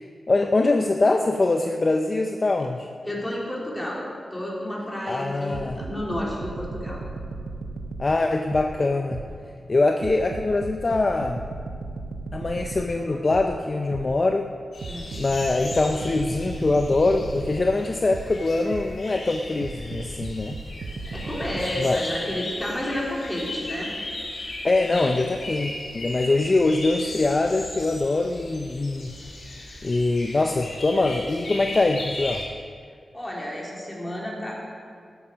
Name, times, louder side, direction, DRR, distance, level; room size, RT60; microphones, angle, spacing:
voice 1, 0.0-2.9 5.1-5.8 8.0-9.2 9.7-11.4 12.3-14.5 15.2-20.6 21.8-22.0 24.6-29.1 29.8-32.4, left 2 dB, 40° left, 4 dB, 0.6 m, -23 dB
voice 2, 3.0-7.0 14.9-15.1 21.1-23.9 33.1-34.6, left 1 dB, 15° left, -4 dB, 3.5 m, -31 dB
sound 1, 5.5-9.5 10.0-14.3 14.8-19.1 19.6-21.7, right 3 dB, 75° right, 1.0 m, -36 dB
sound 2, 14.7-32.4, left 1 dB, 65° left, 3.8 m, -37 dB
13.0 x 9.3 x 6.3 m, 2.1 s
wide cardioid pair, 90°, 0 cm